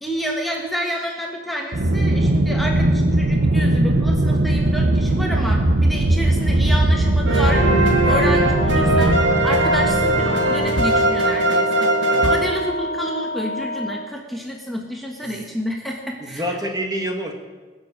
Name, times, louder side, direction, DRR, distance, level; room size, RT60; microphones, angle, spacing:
voice 1, 0.0-16.6, equal, ahead, 0 dB, 1.5 m, -29 dB
Aircraft, 1.7-11.2, right 1 dB, 65° right, 1.1 m, -19 dB
sound 1, 7.3-13.2, right 2 dB, 80° right, 2.3 m, -20 dB
Wind instrument woodwind instrument, 8.4-14.2, left 1 dB, 60° left, 1.2 m, -28 dB
voice 2, 12.1-12.5 15.2-15.3 16.2-17.3, equal, 20° right, 3 dB, 1.7 m, -28 dB
21.0 x 7.2 x 8.7 m, 1.3 s
head